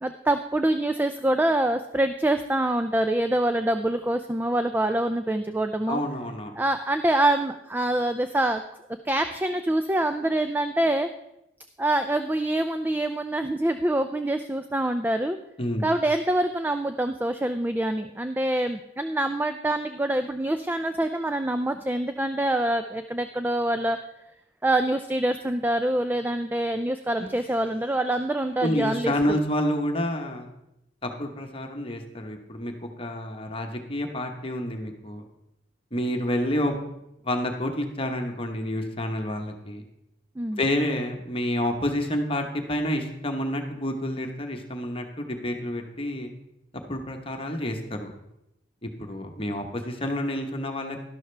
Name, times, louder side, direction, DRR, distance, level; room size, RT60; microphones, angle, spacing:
voice 1, 0.0-6.0 6.6-8.6 9.0-11.1 11.8-15.4 15.8-24.0 24.6-29.4 40.4-40.6, right 1 dB, 10° right, 8 dB, 0.3 m, -25 dB
voice 2, 5.9-6.6 15.6-15.9 27.2-27.3 28.6-30.5 31.0-35.2 35.9-36.7 37.2-39.8 40.5-46.3 46.9-48.1 48.8-51.0, left 1 dB, 30° left, 4 dB, 1.1 m, -29 dB
12.0 x 12.0 x 3.3 m, 0.86 s
head